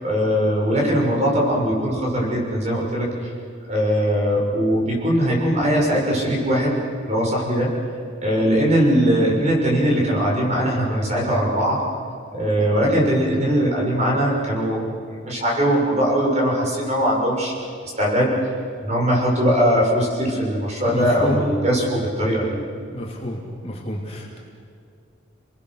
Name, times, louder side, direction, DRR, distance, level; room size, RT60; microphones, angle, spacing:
voice 1, 0.0-3.3 3.7-6.7 7.1-7.7 8.2-11.8 12.3-17.5 17.8-18.3 18.8-22.6, equal, 35° right, -3 dB, 6.6 m, -20 dB
voice 2, 20.9-21.4 22.9-24.4, equal, 30° left, -1 dB, 2.9 m, -28 dB
30.0 x 20.5 x 6.6 m, 2.3 s
head